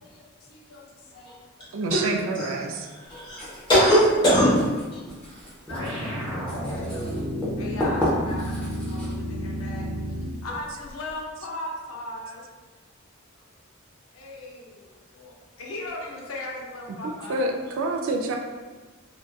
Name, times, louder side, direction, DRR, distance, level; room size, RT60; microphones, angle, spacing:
voice 1, 0.0-1.8 5.7-7.2 7.6-9.9 10.4-12.5 13.3-13.4 14.1-17.5, left 2 dB, 80° left, -2 dB, 0.5 m, -38 dB
voice 2, 1.7-2.9 17.0-18.4, right 2 dB, 65° right, 2 dB, 0.3 m, -27 dB
voice 3, 2.9-4.6 4.9-5.0, equal, 20° left, -9 dB, 1.0 m, -21 dB
Writing, 3.0-11.2, equal, 5° left, 0.5 m, -35 dB
sound 1, 5.7-10.4, equal, 20° right, 0.9 m, -31 dB
2.6 x 2.2 x 2.2 m, 1.3 s
head